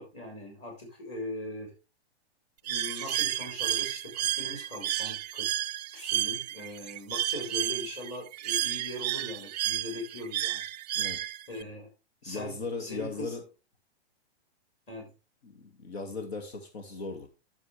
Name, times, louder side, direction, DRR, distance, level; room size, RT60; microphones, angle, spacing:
voice 1, 0.0-1.7 2.6-5.5 5.9-10.6 11.5-11.9 12.2-13.3 14.9-15.1, left 1 dB, 20° left, 0 dB, 5.1 m, -40 dB
Bird, 2.7-11.6, right 13 dB, 40° right, 0.4 m, -32 dB
voice 2, 12.2-13.4 15.4-17.3, left 4 dB, 70° left, 5 dB, 2.2 m, -37 dB
11.5 x 7.2 x 3.4 m, 0.30 s
hypercardioid pair, 155°, 33 cm